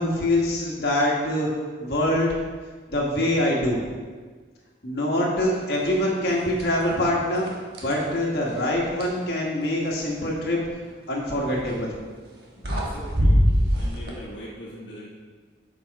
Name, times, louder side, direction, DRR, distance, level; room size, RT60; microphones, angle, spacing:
voice 1, 0.0-1.5 1.8-2.3 2.9-3.8 4.8-7.5 7.8-10.6 11.1-11.9, left 1 dB, 55° left, -4 dB, 1.6 m, -24 dB
sound 1, 5.7-5.9 6.3-6.9 7.3-9.2 11.4-11.7 12.3-12.4 12.6-14.1, equal, 55° right, 1.3 m, -24 dB
voice 2, 12.6-13.4 13.8-15.1, equal, 70° left, -6 dB, 1.1 m, -40 dB
7.6 x 5.1 x 4.2 m, 1.5 s
head